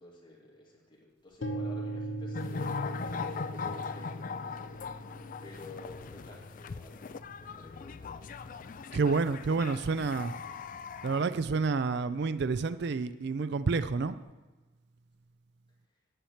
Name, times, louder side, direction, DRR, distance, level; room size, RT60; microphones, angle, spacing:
voice 1, 0.0-2.7 3.0-4.6 5.4-8.4, left 2 dB, 25° left, -3 dB, 2.3 m, -51 dB
sound 1, 1.4-9.3, right 1 dB, 65° left, 1.0 m, -41 dB
sound 2, 2.3-11.3, left 5 dB, 40° left, 0.3 m, -40 dB
voice 2, 8.9-10.3 11.0-14.2, right 4 dB, 55° right, 12 dB, 0.4 m, -29 dB
10.0 x 5.8 x 7.2 m, 1.2 s
head